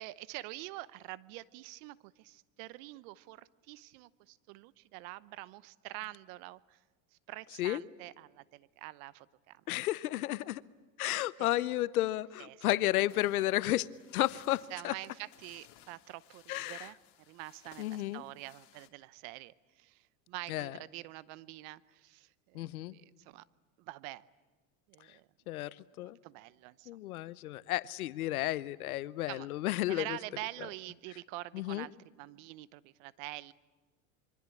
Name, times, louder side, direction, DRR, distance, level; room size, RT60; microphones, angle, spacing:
voice 1, 0.0-6.8 7.3-9.6 11.4-11.5 12.4-12.6 14.7-17.0 17.3-23.4 23.8-24.2 24.9-25.3 26.0-26.9 29.3-29.5 29.9-33.5, right 19 dB, 65° right, 18 dB, 1.0 m, -46 dB
voice 2, 9.7-10.6 11.0-13.9 14.1-14.9 16.5-16.9 17.8-18.2 20.5-20.7 22.5-22.9 25.5-26.2 26.9-30.2 31.5-31.9, left 15 dB, 85° left, 18 dB, 0.9 m, -32 dB
sound 1, 13.1-18.9, left 13 dB, 65° left, 2.5 m, -60 dB
27.0 x 23.5 x 8.5 m, 1.3 s
hypercardioid pair, 95°, 42 cm